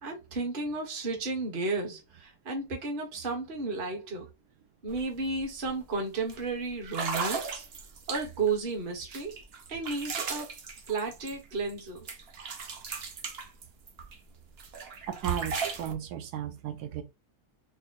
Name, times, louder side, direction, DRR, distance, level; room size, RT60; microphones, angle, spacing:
voice 1, 0.0-4.3 4.8-7.6 8.1-9.3 9.7-10.5 10.9-12.1, right 3 dB, 35° right, 1.1 m, -33 dB
sound 1, 4.9-5.0 5.4-5.7 6.3-6.4 6.9-8.5 9.1-11.8 12.1-14.2 14.6-15.9, right 5 dB, 50° right, 0.8 m, -37 dB
voice 2, 15.1-17.0, right 9 dB, 80° right, 1.2 m, -34 dB
4.3 x 2.0 x 3.9 m
omnidirectional pair, 1.7 m